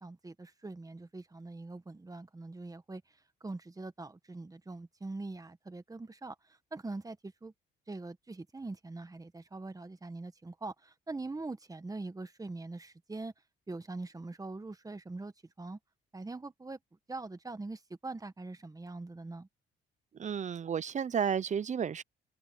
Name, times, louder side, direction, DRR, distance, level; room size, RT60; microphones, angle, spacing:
voice 1, 0.0-3.0 3.4-6.3 6.7-7.5 7.9-13.3 13.7-15.8 16.1-16.8 17.1-19.5, right 3 dB, 15° right, 1.6 m, -43 dB
voice 2, 20.2-22.0, right 7 dB, 35° right, 0.6 m, -32 dB
cardioid pair, 90°, 20 cm